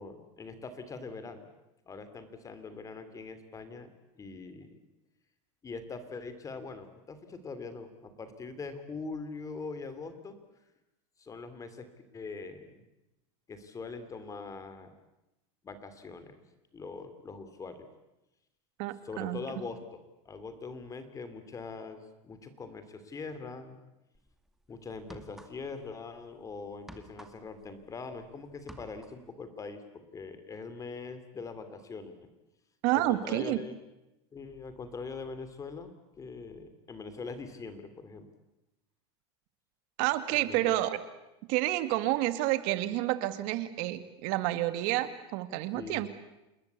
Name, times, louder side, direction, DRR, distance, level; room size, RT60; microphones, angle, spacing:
voice 1, 0.0-1.5 1.8-4.8 5.6-10.4 11.2-11.9 12.1-12.8 13.5-14.9 15.6-16.4 16.7-17.9 19.0-23.8 24.7-32.2 32.9-33.8 34.3-35.9 36.2-38.3 40.3-40.9 45.7-46.0, left 4 dB, 20° left, 11 dB, 3.2 m, -42 dB
voice 2, 18.8-19.4 32.8-33.6 40.0-41.0 41.5-46.1, right 16 dB, 60° right, 11 dB, 2.2 m, -29 dB
sound 1, 24.1-24.3 24.9-25.9 26.1-28.3 28.5-29.3, equal, ahead, 2.3 m, -50 dB
28.5 x 20.5 x 8.4 m, 0.95 s
supercardioid pair, 130°, 15 cm